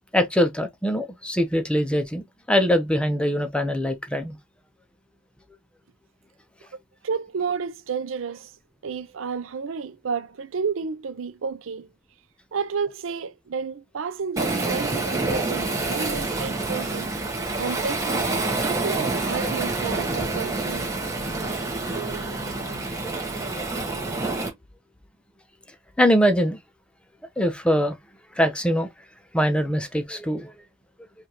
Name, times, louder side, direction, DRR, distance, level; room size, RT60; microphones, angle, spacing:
voice 1, 0.1-4.4 26.0-26.6 27.4-28.0 28.3-28.9 29.3-30.5, equal, 5° left, 0.6 m, -22 dB
voice 2, 7.0-8.5 8.8-11.9 12.5-17.1 17.6-20.9, right 5 dB, 75° right, 0.5 m, -31 dB
Waves surf, 14.4-24.5, right 3 dB, 15° right, 1.1 m, -27 dB
5.0 x 2.4 x 2.9 m
head